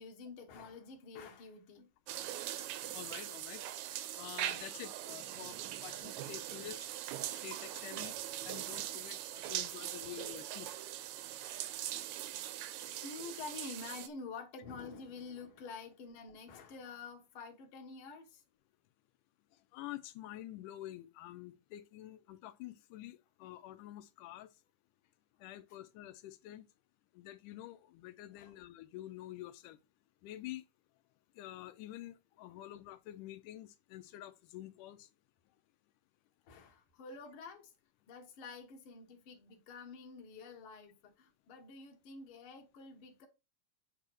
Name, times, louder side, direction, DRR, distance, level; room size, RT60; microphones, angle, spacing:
voice 1, 0.0-1.9 5.9-6.3 9.8-10.2 11.2-11.4 13.0-18.4 28.3-28.5 32.5-32.6 36.5-37.7 38.1-43.3, left 4 dB, 50° left, 2.0 m, -49 dB
sound 1, 2.1-14.1, right 12 dB, 75° right, 1.9 m, -41 dB
voice 2, 2.9-3.6 4.2-6.9 7.3-8.2 8.5-10.7 19.7-24.5 25.4-26.7 27.1-29.8 30.2-30.6 31.4-35.1, left 14 dB, 85° left, 2.2 m, -48 dB
8.1 x 3.4 x 6.0 m
omnidirectional pair, 3.6 m